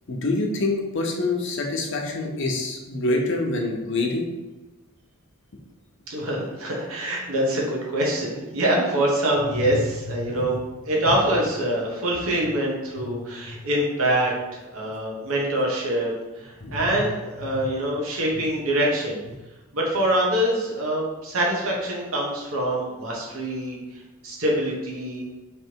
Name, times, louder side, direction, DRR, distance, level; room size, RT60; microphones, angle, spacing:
voice 1, 0.1-4.3 9.7-9.8 10.2-10.4 13.1-13.2 13.5-13.6 16.6-17.0 17.5-17.6, left 2 dB, 55° left, 2 dB, 0.7 m, -26 dB
voice 2, 6.1-10.6 10.8-19.2 19.7-23.8 24.2-25.2, right 1 dB, 75° right, -2 dB, 1.0 m, -25 dB
3.3 x 2.9 x 4.5 m, 1.1 s
head